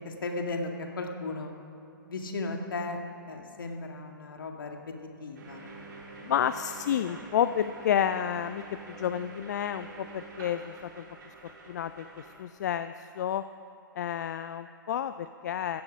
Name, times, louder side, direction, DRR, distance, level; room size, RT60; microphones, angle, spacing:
voice 1, 0.0-1.5 2.1-3.0 3.3-4.9 5.2-5.9 6.1-6.2 7.1-7.2, left 3 dB, 70° left, 3 dB, 2.0 m, -36 dB
sound 1, 5.4-12.4, right 3 dB, 55° right, 3.4 m, -47 dB
voice 2, 6.2-11.1 11.4-13.4 14.0-15.8, left 9 dB, 50° left, 12 dB, 0.4 m, -30 dB
15.5 x 13.5 x 5.2 m, 2.6 s
figure-of-eight pair, 115°, 12 cm